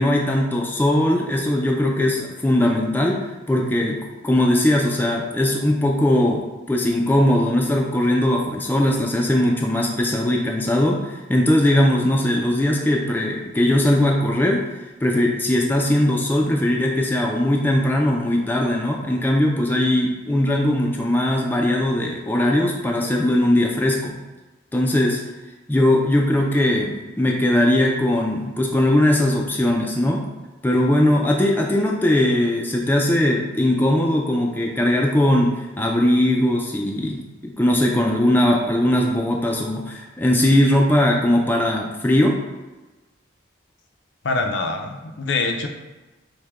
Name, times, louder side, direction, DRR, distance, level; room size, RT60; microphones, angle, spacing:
voice 1, 0.0-4.0 4.2-14.6 15.0-24.2 24.7-25.2 25.7-30.2 30.6-35.5 35.8-42.4, left 1 dB, 10° left, -1 dB, 0.4 m, -20 dB
voice 2, 44.2-45.7, left 3 dB, 65° left, 4 dB, 0.5 m, -24 dB
6.4 x 2.2 x 3.5 m, 1.1 s
head